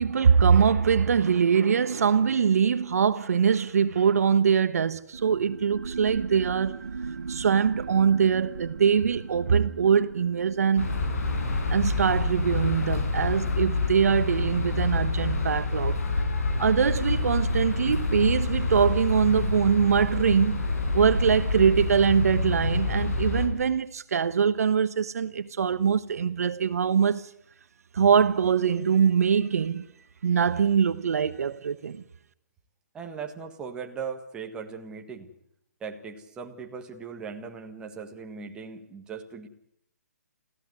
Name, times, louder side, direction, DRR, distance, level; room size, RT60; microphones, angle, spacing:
voice 1, 0.0-6.8 7.3-11.0 11.7-16.0 16.6-20.7 20.9-27.3 27.9-29.8 30.2-32.0, right 7 dB, 65° right, 1.2 m, -23 dB
sound 1, 5.1-16.3, right 5 dB, 85° right, 1.9 m, -40 dB
sound 2, 10.8-23.5, left 3 dB, 60° left, 5.7 m, -27 dB
voice 2, 32.9-35.3 35.8-39.5, right 6 dB, 10° right, 1.7 m, -38 dB
24.5 x 15.5 x 9.6 m
hypercardioid pair, 160°, 9 cm